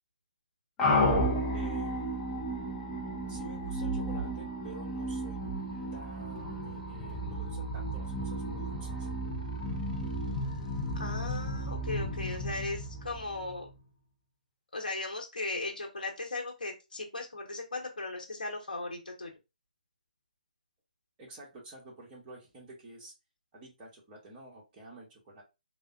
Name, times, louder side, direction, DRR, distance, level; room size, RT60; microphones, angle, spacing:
sound 1, 0.8-13.7, equal, 10° left, 0.5 m, -33 dB
voice 1, 1.5-2.3 3.3-5.4 5.9-9.1 21.2-23.1 23.5-25.4, right 2 dB, 20° right, -3 dB, 1.1 m, -49 dB
sound 2, 3.3-4.8 5.2-10.7 12.3-12.6, right 4 dB, 55° right, 0.5 m, -44 dB
voice 2, 10.9-13.7 14.7-19.3, left 2 dB, 80° left, 1 dB, 1.0 m, -37 dB
3.4 x 2.1 x 2.5 m, 0.26 s
figure-of-eight pair, 150°, 5 cm